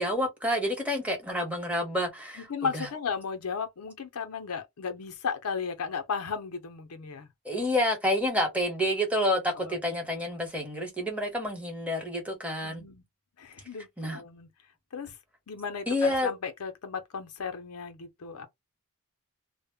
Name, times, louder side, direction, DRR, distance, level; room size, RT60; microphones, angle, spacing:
voice 1, 0.0-2.4 2.7-2.9 7.4-12.8 14.0-14.2 15.9-16.3, left 1 dB, 5° right, 0.9 m, -28 dB
voice 2, 2.4-7.3 9.5-9.8 12.6-13.0 13.4-14.5 14.9-15.1 15.5-18.5, left 5 dB, 70° left, 0.6 m, -35 dB
2.1 x 2.0 x 3.4 m
head